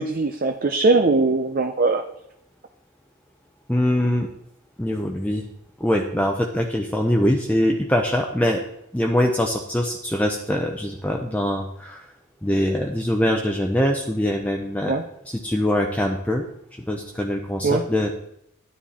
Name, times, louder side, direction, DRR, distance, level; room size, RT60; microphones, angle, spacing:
voice 1, 0.0-2.0 14.9-15.0 17.6-17.8, right 3 dB, 45° right, 5 dB, 0.7 m, -20 dB
voice 2, 3.7-4.3 4.8-5.4 5.8-8.6 8.9-12.0 12.4-16.4 16.7-18.1, left 1 dB, 5° left, 1 dB, 0.8 m, -23 dB
12.5 x 10.0 x 4.3 m, 0.77 s
head